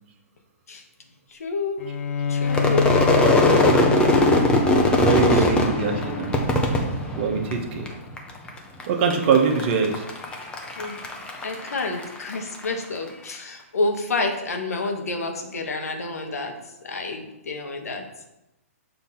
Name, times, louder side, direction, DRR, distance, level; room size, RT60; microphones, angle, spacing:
voice 1, 1.3-1.9 2.3-2.9 5.3-5.5 10.8-11.1 11.4-18.0, left 3 dB, 80° left, 4 dB, 1.1 m, -29 dB
Bowed string instrument, 1.8-7.3, left 5 dB, 65° left, 0.5 m, -28 dB
Crowd / Fireworks, 2.5-7.9 8.2-8.8 9.1-12.7, left 1 dB, 10° left, 0.8 m, -20 dB
voice 2, 3.6-3.9 4.9-6.4 7.2-7.9 8.9-10.0, right 5 dB, 45° right, 3 dB, 1.1 m, -23 dB
6.9 x 2.9 x 5.6 m, 0.92 s
hypercardioid pair, 135°, 8 cm